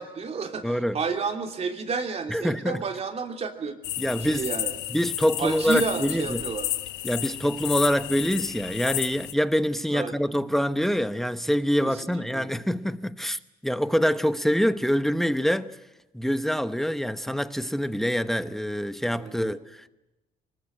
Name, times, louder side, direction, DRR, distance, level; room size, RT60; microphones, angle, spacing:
voice 1, 0.0-3.8 4.2-4.7 5.4-6.7 9.9-10.2 11.8-12.5 19.2-19.5, right 5 dB, 40° right, 3.1 m, -31 dB
voice 2, 0.6-1.0 2.3-2.8 4.0-4.5 4.9-6.4 7.0-15.8 16.1-19.9, equal, ahead, 1.0 m, -25 dB
sound 1, 3.8-9.3, left 14 dB, 80° left, 1.0 m, -32 dB
24.0 x 21.0 x 8.8 m
cardioid pair, 110°, 17 cm